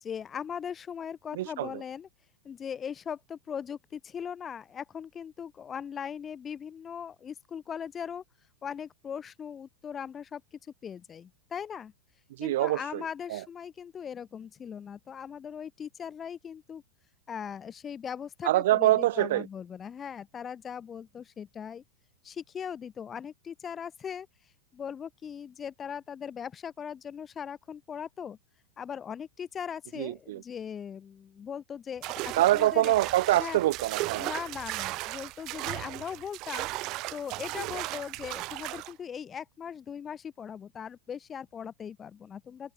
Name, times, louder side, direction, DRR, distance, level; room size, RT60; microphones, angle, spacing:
voice 1, 0.0-2.1 2.4-8.2 8.6-10.4 10.8-11.9 12.4-16.8 17.3-21.8 22.2-24.3 24.7-28.4 28.8-32.9 33.4-33.6 34.2-36.7 37.1-42.7, left 7 dB, 25° left, 0.7 m, -39 dB
voice 2, 1.3-1.8 12.4-13.0 13.3-13.4 18.4-19.5 30.0-30.4 32.4-34.3, right 15 dB, 70° right, 0.3 m, -25 dB
sound 1, 32.0-38.9, right 20 dB, 45° right, 0.8 m, -36 dB
hypercardioid pair, 105°, 0 cm